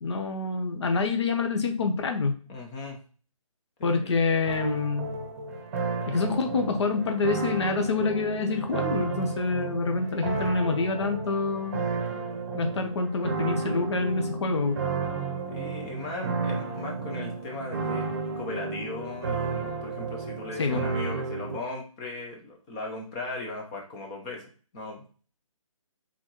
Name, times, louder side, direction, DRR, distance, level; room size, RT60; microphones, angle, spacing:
voice 1, 0.0-2.3 3.8-5.2 6.1-11.8 12.5-14.8 20.6-20.8, left 3 dB, 50° left, 5 dB, 0.8 m, -27 dB
voice 2, 2.5-3.0 3.8-4.2 15.5-25.0, left 2 dB, 10° left, 1 dB, 0.5 m, -38 dB
sound 1, 4.5-21.6, right 4 dB, 30° right, 0.8 m, -32 dB
4.0 x 3.7 x 3.0 m, 0.39 s
hypercardioid pair, 160°, 18 cm